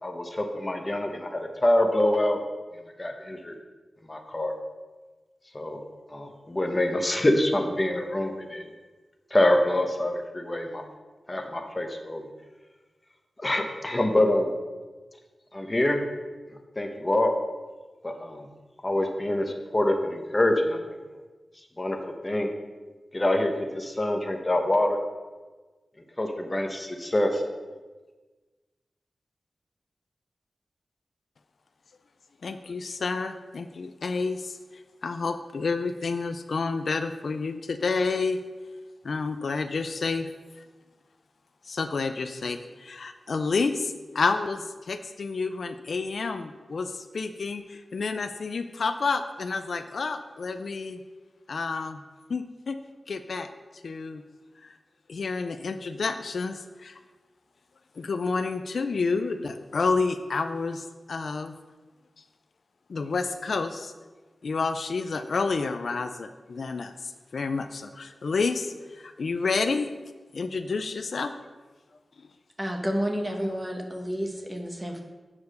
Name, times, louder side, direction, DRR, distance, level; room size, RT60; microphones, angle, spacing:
voice 1, 0.0-2.4 3.0-3.6 4.1-4.5 5.5-5.8 6.1-8.6 9.3-10.8 11.3-12.3 13.4-14.5 15.5-16.0 16.8-17.3 18.0-18.5 18.8-20.8 21.8-22.0 22.2-22.5 23.1-25.0 26.2-27.4, left 1 dB, 25° left, 4 dB, 1.0 m, -25 dB
voice 2, 32.4-38.4 39.0-40.3 40.6-40.7 41.7-51.0 51.5-52.0 52.3-52.8 53.1-53.5 53.8-54.2 54.6-54.8 55.1-57.0 58.0-61.5 62.9-63.9 64.4-69.9 70.3-71.3, left 4 dB, 70° left, 8 dB, 0.4 m, -29 dB
voice 3, 72.6-75.0, equal, 15° right, 2 dB, 1.2 m, -30 dB
8.5 x 4.7 x 6.4 m, 1.3 s
wide cardioid pair, 110°, 0 cm